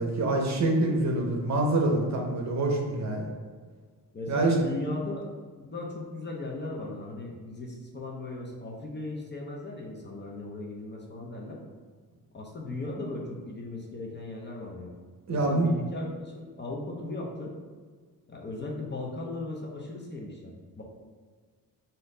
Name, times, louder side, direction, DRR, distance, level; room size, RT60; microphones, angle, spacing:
voice 1, 0.0-3.3 4.3-4.5 15.3-15.7, right 2 dB, 45° right, 1 dB, 0.7 m, -26 dB
voice 2, 4.1-5.2 5.6-11.6 12.3-14.9 15.3-17.5 18.3-20.8, left 2 dB, 30° left, -2 dB, 0.6 m, -37 dB
4.2 x 2.6 x 3.7 m, 1.5 s
wide cardioid pair, 145°, 39 cm